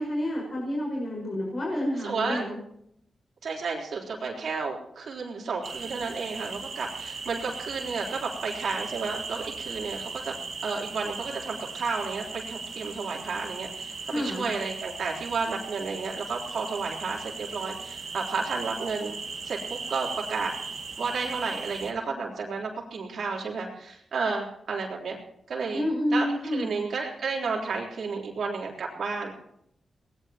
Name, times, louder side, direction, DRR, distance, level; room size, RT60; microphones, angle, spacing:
voice 1, 0.0-2.6 14.1-14.5 25.7-26.7, left 1 dB, 45° left, -2 dB, 5.2 m, -29 dB
voice 2, 2.0-2.4 3.4-10.3 10.6-19.1 19.4-20.5 21.0-25.2 25.5-25.9 26.1-29.3, right 4 dB, 75° right, -2 dB, 3.8 m, -32 dB
sound 1, 5.6-21.9, right 4 dB, 50° right, 1.9 m, -38 dB
24.0 x 18.5 x 3.0 m, 0.75 s
wide cardioid pair, 100°, 0 cm